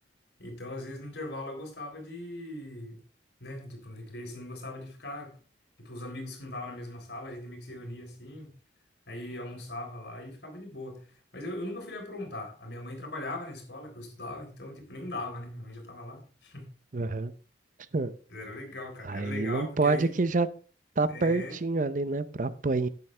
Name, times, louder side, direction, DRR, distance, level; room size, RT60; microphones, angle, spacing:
voice 1, 0.4-3.0 3.4-5.3 5.8-8.5 9.1-16.7 18.3-20.1 21.1-21.6, left 1 dB, 65° left, 3.8 m, -40 dB
voice 2, 16.9-17.3 17.9-18.1 19.0-20.5 21.0-22.9, right 3 dB, 45° right, 0.5 m, -27 dB
12.0 x 9.5 x 3.3 m
head